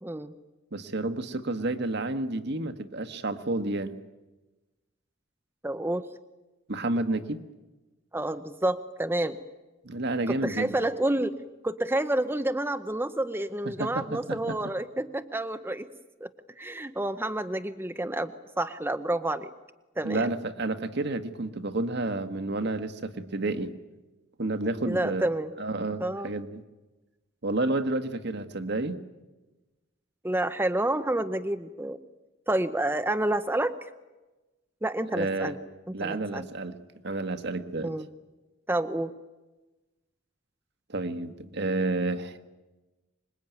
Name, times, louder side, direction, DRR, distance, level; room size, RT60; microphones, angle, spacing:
voice 1, 0.0-0.3 5.6-6.1 8.1-9.4 10.3-11.4 11.6-15.9 16.2-16.3 16.6-19.5 20.0-20.3 24.8-25.5 26.0-26.3 30.2-32.0 32.5-33.9 34.8-35.6 35.9-36.4 37.8-38.1 38.7-39.1, right 1 dB, 10° right, 9 dB, 0.8 m, -29 dB
voice 2, 0.7-4.0 6.7-7.4 9.8-10.7 13.8-14.6 20.0-23.7 24.4-25.2 25.6-26.6 27.4-29.0 35.1-35.6 35.9-36.8 37.0-37.9 40.9-42.5, right 2 dB, 55° right, 8 dB, 1.5 m, -30 dB
26.0 x 21.5 x 9.3 m, 1.1 s
head